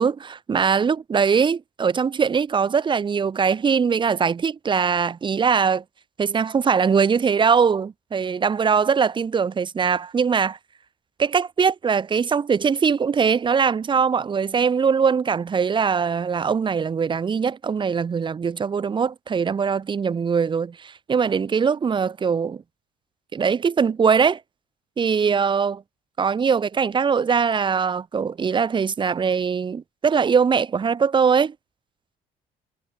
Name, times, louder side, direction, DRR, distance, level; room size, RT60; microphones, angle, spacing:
voice 1, 0.0-5.8 6.2-10.6 11.2-22.6 23.3-24.4 25.0-25.8 26.2-31.5, right 6 dB, 30° right, 0.8 m, -21 dB
cardioid pair, 110°, 17 cm